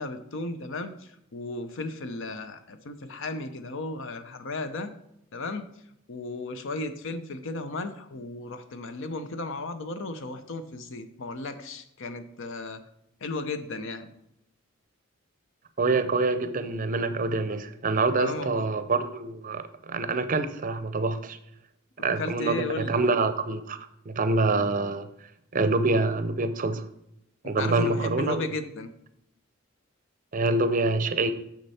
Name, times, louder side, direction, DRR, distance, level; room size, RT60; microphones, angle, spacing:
voice 1, 0.0-4.9 5.3-5.7 6.1-12.8 13.2-14.1 18.2-18.7 22.2-23.0 27.4-28.9, left 2 dB, 65° left, 10 dB, 0.7 m, -35 dB
voice 2, 15.8-21.4 22.0-23.8 24.1-25.1 25.5-26.9 27.4-28.4 30.3-31.3, right 3 dB, 40° right, 11 dB, 0.5 m, -26 dB
6.6 x 6.4 x 4.2 m, 0.81 s
head